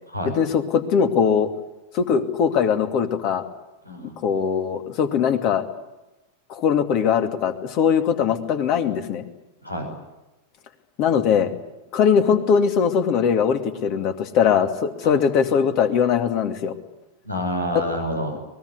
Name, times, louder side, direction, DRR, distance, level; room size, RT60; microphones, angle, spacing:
voice 1, 0.4-1.5 1.9-3.4 4.2-5.6 6.5-9.2 11.0-11.5 11.9-16.7, left 7 dB, 40° left, 8 dB, 2.6 m, -20 dB
voice 2, 3.8-4.2 9.6-9.9 15.0-15.2 17.2-18.4, equal, 85° left, 3 dB, 6.0 m, -28 dB
23.5 x 21.0 x 9.8 m, 1.0 s
figure-of-eight pair, 90°, 0 cm